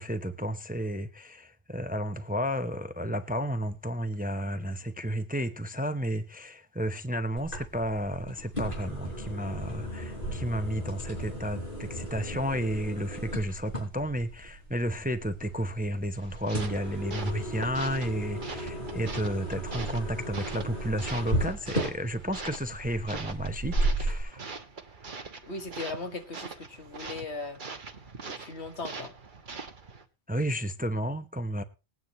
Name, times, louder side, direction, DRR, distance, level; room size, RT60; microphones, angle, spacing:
voice 1, 0.0-24.4 30.3-31.6, equal, 10° right, 0.6 m, -32 dB
sound 1, 7.4-24.2, right 1 dB, 50° left, 6.0 m, -35 dB
sound 2, 16.2-30.0, right 4 dB, 50° right, 1.4 m, -43 dB
voice 2, 25.4-27.6 28.3-29.1, left 3 dB, 80° left, 1.9 m, -38 dB
21.0 x 9.3 x 3.0 m
omnidirectional pair, 1.1 m